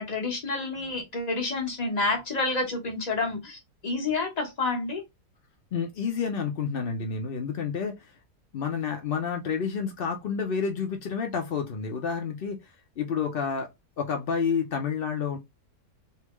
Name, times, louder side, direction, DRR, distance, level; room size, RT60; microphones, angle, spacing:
voice 1, 0.0-5.0, left 3 dB, 30° left, 1.0 m, -29 dB
voice 2, 5.7-8.2 8.5-13.7 14.0-15.4, left 6 dB, 70° left, 0.5 m, -29 dB
3.4 x 2.7 x 3.0 m
omnidirectional pair, 1.7 m